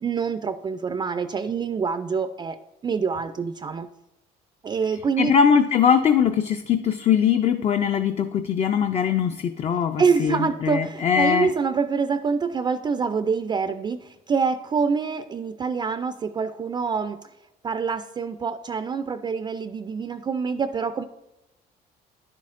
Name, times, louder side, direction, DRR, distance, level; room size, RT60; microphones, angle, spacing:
voice 1, 0.0-2.6 2.8-3.9 4.6-5.3 10.0-17.2 17.6-21.0, right 5 dB, 25° right, 9 dB, 0.3 m, -26 dB
voice 2, 5.2-11.5, left 7 dB, 40° left, 7 dB, 0.4 m, -21 dB
10.0 x 7.5 x 2.5 m, 0.92 s
cardioid pair, 110°, 17 cm